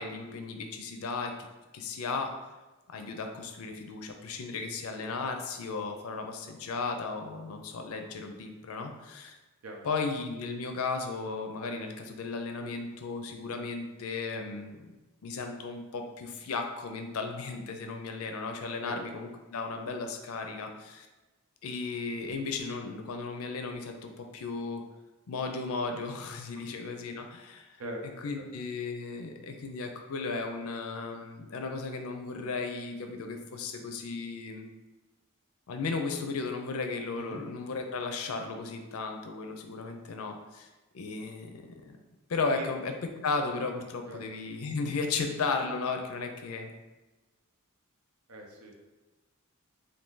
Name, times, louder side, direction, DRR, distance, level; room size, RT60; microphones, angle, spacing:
voice 1, 0.0-1.3 1.7-2.3 2.9-9.4 9.8-14.9 15.2-21.1 21.6-24.8 25.3-27.7 28.2-34.7 35.7-40.7 40.9-42.0 42.3-42.9 43.2-46.7, left 4 dB, 75° left, 5 dB, 0.4 m, -35 dB
voice 2, 48.3-48.9, right 1 dB, 85° right, 0 dB, 0.7 m, -41 dB
2.7 x 2.6 x 3.6 m, 1.1 s
head